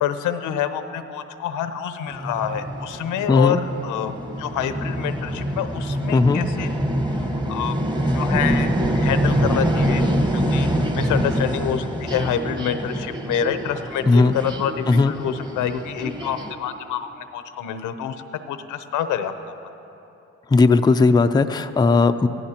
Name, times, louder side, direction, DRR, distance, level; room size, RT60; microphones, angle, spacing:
voice 1, 0.0-6.7 7.5-7.8 8.1-8.7 8.9-10.7 10.9-18.2 18.5-19.5, left 9 dB, 85° left, 9 dB, 0.8 m, -27 dB
sound 1, 2.1-16.5, equal, 15° right, 1.2 m, -25 dB
voice 2, 3.3-3.6 6.1-6.4 14.1-14.4 14.9-15.1 20.5-22.3, left 3 dB, 15° left, 8 dB, 0.4 m, -16 dB
17.5 x 16.0 x 2.9 m, 3.0 s
cardioid pair, 90°, 30 cm